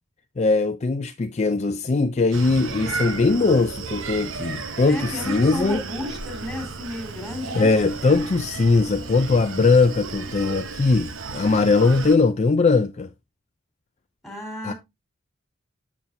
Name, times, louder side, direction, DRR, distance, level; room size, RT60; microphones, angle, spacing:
voice 1, 0.4-5.8 7.5-13.1 14.6-14.7, left 3 dB, 35° left, 0.4 m, -20 dB
Screaming, 2.3-12.2, right 4 dB, 70° right, 0.9 m, -34 dB
voice 2, 4.9-7.7 14.2-14.7, left 1 dB, ahead, 3.9 m, -33 dB
7.6 x 7.2 x 2.7 m
head